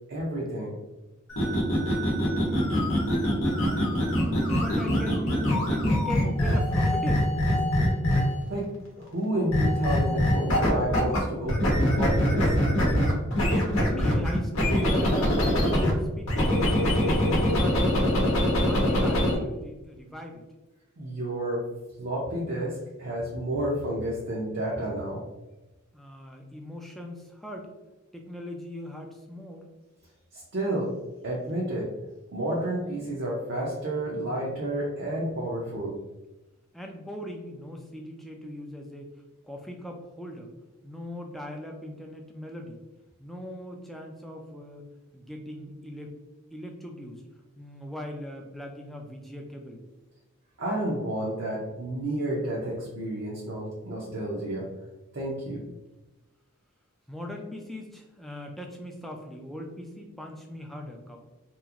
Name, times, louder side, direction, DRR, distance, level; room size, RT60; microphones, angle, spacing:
voice 1, 0.1-0.7 8.5-12.5 21.0-21.6 22.0-25.2 30.3-30.9 31.2-31.9 32.3-36.0 50.6-54.7 55.1-55.6, right 1 dB, 55° right, -4 dB, 0.6 m, -30 dB
sound 1, 1.3-8.5 9.5-11.2 11.5-15.9 16.3-19.4, equal, 75° left, 0.7 m, -24 dB
voice 2, 2.1-3.1 4.0-7.3 13.4-16.6 17.0-18.1 18.5-20.4 25.9-27.7 28.1-29.7 36.7-39.1 39.4-40.5 40.8-42.8 43.2-44.8 45.1-46.1 46.5-47.2 47.6-49.8 57.1-61.2, left 1 dB, ahead, 1 dB, 0.3 m, -40 dB
2.9 x 2.5 x 2.4 m, 1.0 s
head